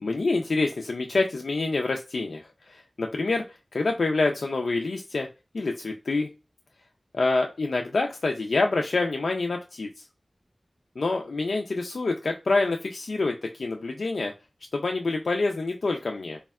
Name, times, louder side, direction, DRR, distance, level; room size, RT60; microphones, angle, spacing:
voice 1, 0.0-3.4 3.7-5.3 5.5-6.3 7.1-9.9 11.0-14.3 14.7-16.4, left 3 dB, 85° left, 2 dB, 0.3 m, -26 dB
3.4 x 2.2 x 2.2 m, 0.28 s
wide cardioid pair, 50°, 0 cm